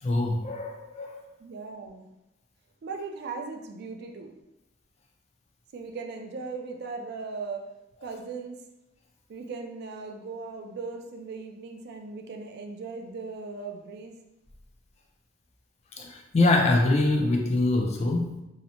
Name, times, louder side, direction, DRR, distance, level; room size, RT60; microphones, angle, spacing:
voice 1, 0.0-1.2 16.0-18.4, left 2 dB, 30° left, 1 dB, 0.3 m, -24 dB
voice 2, 1.4-2.1 2.8-4.3 5.7-7.7 8.0-8.6 9.3-14.2, right 4 dB, 50° right, 4 dB, 0.3 m, -38 dB
2.7 x 2.0 x 2.8 m, 0.90 s
head